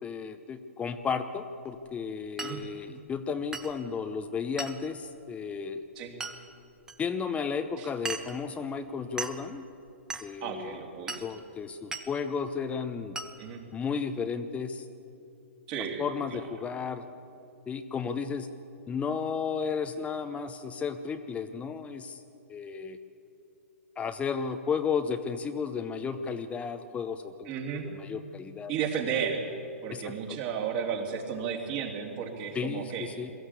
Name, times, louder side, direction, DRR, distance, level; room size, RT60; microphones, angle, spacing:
voice 1, 0.0-5.9 7.0-9.7 10.2-10.8 11.2-13.2 13.7-14.9 16.0-17.0 17.7-18.5 18.9-22.2 22.5-23.0 24.0-28.7 29.9-30.4 32.5-33.3, left 6 dB, 15° left, 7 dB, 0.8 m, -33 dB
Glass, 2.4-2.6 3.5-3.8 4.6-4.8 6.2-6.4 6.9-7.0 8.1-8.4 9.2-9.4 10.1-10.3 11.1-11.3 11.9-12.1 13.2-13.3, right 3 dB, 10° right, 1.2 m, -36 dB
voice 2, 10.4-11.2 13.4-13.6 15.7-16.4 27.4-27.9 28.7-29.4 29.8-33.1, right 7 dB, 40° right, 1 dB, 3.2 m, -33 dB
22.5 x 14.5 x 8.3 m, 2.7 s
hypercardioid pair, 120°, 8 cm